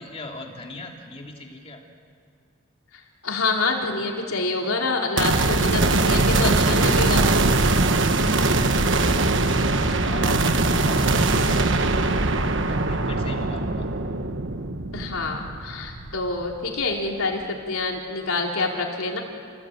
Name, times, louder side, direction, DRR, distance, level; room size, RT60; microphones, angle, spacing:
voice 1, 0.0-1.8 7.9-13.9, left 2 dB, 30° left, 1 dB, 2.8 m, -41 dB
voice 2, 2.9-7.3 14.9-19.2, left 3 dB, 85° left, 0 dB, 4.0 m, -27 dB
sound 1, 5.2-16.5, right 2 dB, 60° right, 1.3 m, -21 dB
30.0 x 17.5 x 9.0 m, 2.6 s
head